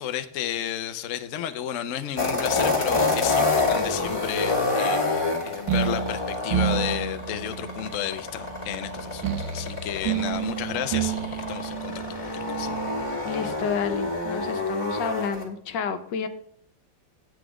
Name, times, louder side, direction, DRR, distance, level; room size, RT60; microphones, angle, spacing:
voice 1, 0.0-12.1 12.5-12.7, left 10 dB, 60° left, 9 dB, 0.9 m, -32 dB
sound 1, 2.2-15.4, left 3 dB, 15° left, 1.9 m, -28 dB
sound 2, 5.7-13.2, right 9 dB, 80° right, 1.6 m, -30 dB
voice 2, 13.2-16.3, left 6 dB, 85° left, 8 dB, 1.6 m, -30 dB
9.1 x 8.3 x 4.8 m, 0.63 s
omnidirectional pair, 1.9 m